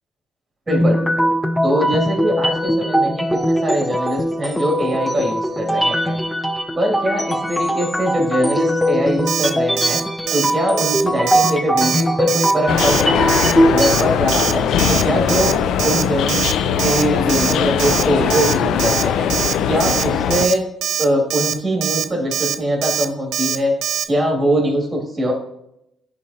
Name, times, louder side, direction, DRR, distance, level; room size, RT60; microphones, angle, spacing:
sound 1, 0.7-14.0, equal, 5° left, 0.5 m, -20 dB
voice 1, 0.7-1.1 1.6-6.2 6.8-10.0 10.3-13.5 13.7-15.6 15.8-16.4 16.8-19.3 19.7-20.6 21.0-23.7 24.1-25.3, equal, 15° right, 0 dB, 2.3 m, -22 dB
Alarm, 9.3-9.5 9.8-10.0 10.3-10.5 10.8-11.0 11.3-11.5 11.8-12.0 12.3-12.5 12.8-13.0 13.3-13.5 13.8-14.0 14.3-14.5 14.8-15.0 15.3-15.5 15.8-16.0 16.3-16.5 16.8-17.0 17.3-17.5 17.8-18.0 18.3-18.5 18.8-19.0 19.3-19.5 19.8-20.0 20.3-20.5 20.8-21.0 21.3-21.5 21.8-22.0 22.3-22.5 22.8-23.1 23.3-23.6 23.8-24.0, right 9 dB, 75° right, 0.4 m, -22 dB
sound 2, 12.7-20.5, left 8 dB, 75° left, 0.3 m, -20 dB
10.0 x 4.2 x 2.8 m, 0.80 s
cardioid pair, 115°, 0 cm